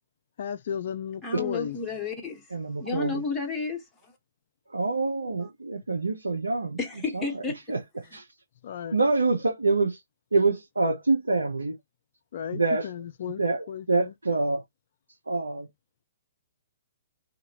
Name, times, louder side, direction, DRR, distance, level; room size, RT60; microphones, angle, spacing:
voice 1, 0.4-1.8 8.6-9.0 12.3-13.4 13.7-14.1, left 9 dB, 50° left, 0.3 m, -34 dB
voice 2, 1.2-2.4 2.8-3.8 6.8-7.6, left 4 dB, 10° left, 1.2 m, -31 dB
voice 3, 2.5-3.2 4.7-6.8 7.1-7.4 7.7-7.8 8.1-8.2 8.9-10.0 10.3-11.8 12.5-12.9 13.3-14.6 15.3-15.7, right 3 dB, 80° right, 0.8 m, -26 dB
2.8 x 2.5 x 2.9 m
figure-of-eight pair, 120°, 0 cm